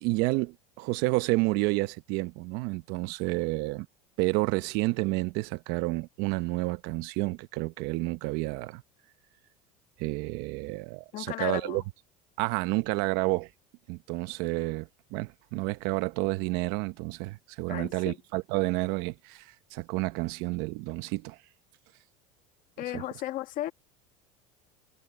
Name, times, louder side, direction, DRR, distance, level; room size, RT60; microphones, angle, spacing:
voice 1, 0.0-3.9 4.2-8.8 10.0-11.8 12.4-13.5 13.9-21.4 22.9-23.0, right 22 dB, 65° right, 1.0 m, -30 dB
voice 2, 11.1-11.8 17.7-18.2 22.8-23.7, left 14 dB, 50° left, 1.8 m, -34 dB
supercardioid pair, 125°, 18 cm